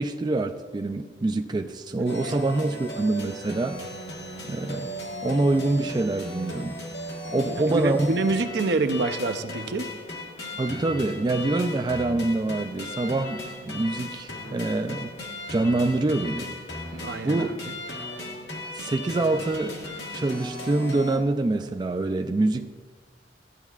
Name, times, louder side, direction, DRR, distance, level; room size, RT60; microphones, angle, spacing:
voice 1, 0.0-3.8 4.5-4.9 5.2-6.8 7.3-8.1 10.6-15.1 15.5-16.5 17.2-17.6 18.8-19.8 20.1-22.7, right 2 dB, 25° right, 6 dB, 0.3 m, -25 dB
sound 1, 2.1-21.2, left 1 dB, 85° left, 1.4 m, -37 dB
voice 2, 7.5-9.9 16.9-17.5, right 3 dB, 70° right, 9 dB, 0.6 m, -27 dB
14.0 x 9.0 x 2.4 m, 1.5 s
head